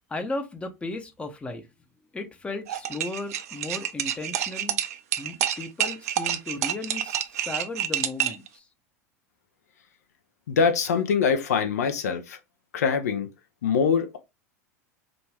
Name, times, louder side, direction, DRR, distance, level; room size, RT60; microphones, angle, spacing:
voice 1, 0.1-1.7 2.1-4.8 5.2-8.6, left 2 dB, 15° left, 0.6 m, -35 dB
sound 1, 2.7-8.5, right 11 dB, 65° right, 0.4 m, -28 dB
voice 2, 10.5-12.4 12.7-13.3 13.6-14.2, left 6 dB, 75° left, 0.6 m, -23 dB
2.5 x 2.3 x 3.2 m
figure-of-eight pair, 85°, 9 cm